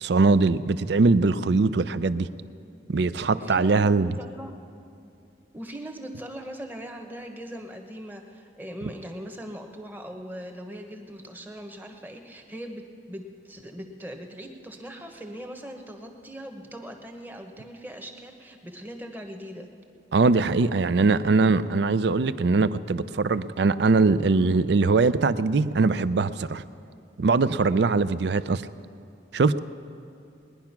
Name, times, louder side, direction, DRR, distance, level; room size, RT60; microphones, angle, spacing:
voice 1, 0.0-2.3 2.9-4.1 20.1-26.6 27.2-28.6 29.3-29.6, right 3 dB, 60° right, 15 dB, 0.4 m, -21 dB
voice 2, 3.3-4.5 5.5-19.7, equal, 10° right, 4 dB, 1.1 m, -40 dB
20.5 x 10.5 x 5.9 m, 2.6 s
head